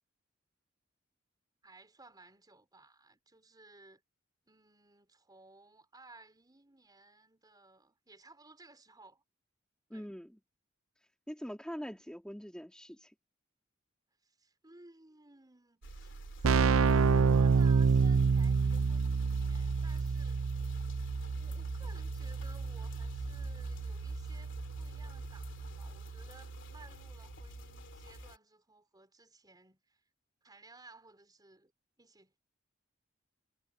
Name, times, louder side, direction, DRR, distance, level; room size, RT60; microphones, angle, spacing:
voice 1, 1.6-4.0 4.5-9.2 9.9-10.1 14.2-20.7 21.4-30.0 30.4-31.7 32.0-32.4, right 3 dB, 20° right, 4.2 m, -58 dB
voice 2, 9.9-10.4 11.3-13.1, equal, 5° left, 2.3 m, -43 dB
sound 1, 15.8-28.4, left 2 dB, 65° left, 2.9 m, -51 dB
Keyboard (musical), 15.8-26.8, right 5 dB, 85° right, 0.5 m, -29 dB
head